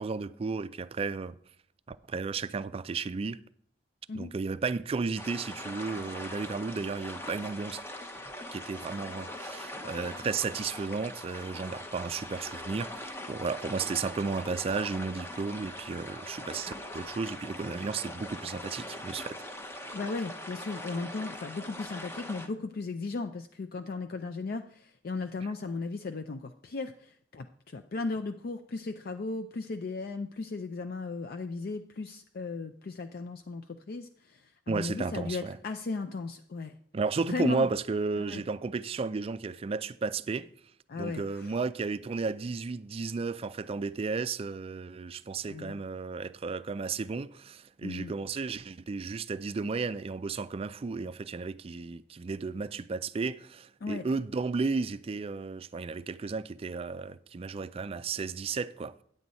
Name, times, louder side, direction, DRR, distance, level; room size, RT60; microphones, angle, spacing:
voice 1, 0.0-1.4 1.9-3.4 4.1-7.8 8.5-19.4 34.7-35.6 36.9-40.5 40.9-58.9, right 4 dB, 30° right, 0.3 m, -33 dB
sound 1, 5.2-22.5, left 1 dB, 15° left, 0.8 m, -42 dB
voice 2, 19.9-36.8 37.3-37.7 38.2-38.4 40.9-41.5 45.4-45.8 47.8-48.1 53.8-54.0, left 3 dB, 55° left, 0.4 m, -36 dB
9.7 x 7.7 x 4.1 m
head